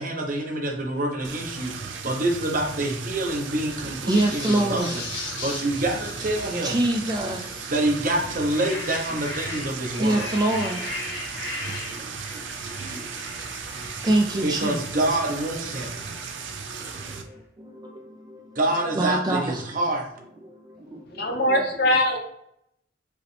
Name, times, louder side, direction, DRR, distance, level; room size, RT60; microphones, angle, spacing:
voice 1, 0.0-4.9 5.1-6.8 7.7-10.3 14.4-15.9 18.6-20.1, right 1 dB, 45° right, 1 dB, 0.9 m, -26 dB
sound 1, 1.2-17.2, right 5 dB, 85° right, 0.6 m, -36 dB
sound 2, 4.0-7.9 8.3-17.0, left 2 dB, 80° left, 1.7 m, -38 dB
voice 2, 4.0-5.0 5.3-5.4 6.6-7.7 9.9-13.2 14.0-14.8 15.1-15.2 15.8-16.2 16.8-18.6 19.0-19.6 20.4-21.5 21.8-21.9, right 1 dB, 20° right, 2 dB, 0.3 m, -27 dB
voice 3, 21.2-22.2, left 1 dB, 60° left, 2 dB, 1.0 m, -21 dB
4.9 x 3.0 x 3.3 m, 0.76 s
head